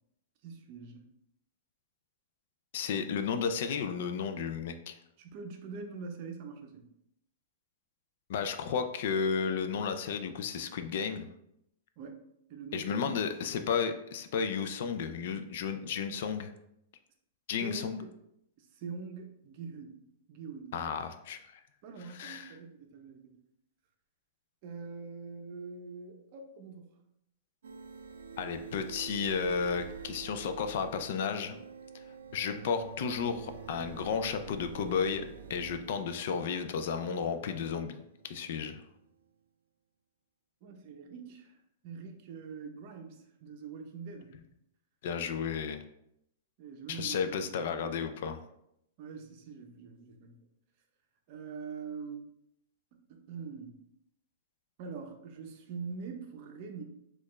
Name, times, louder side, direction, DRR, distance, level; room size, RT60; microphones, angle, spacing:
voice 1, 0.4-1.1 5.2-6.9 12.0-12.2 12.5-13.2 17.6-18.1 18.6-20.0 20.3-20.7 21.8-23.4 24.6-27.0 40.6-41.5 41.8-44.3 46.6-48.0 49.0-50.4 51.3-52.2 52.9-53.8 54.8-56.8, right 5 dB, 45° right, 4 dB, 0.6 m, -44 dB
voice 2, 2.7-4.9 8.3-11.3 12.7-16.5 17.5-18.0 20.7-21.4 22.1-22.5 28.4-31.6 32.3-38.0 38.2-38.8 45.0-45.8 46.9-48.4, left 6 dB, 60° left, 8 dB, 0.4 m, -33 dB
sound 1, 27.6-39.2, right 6 dB, 90° right, 0.3 m, -47 dB
4.3 x 2.4 x 3.0 m, 0.78 s
hypercardioid pair, 145°, 0 cm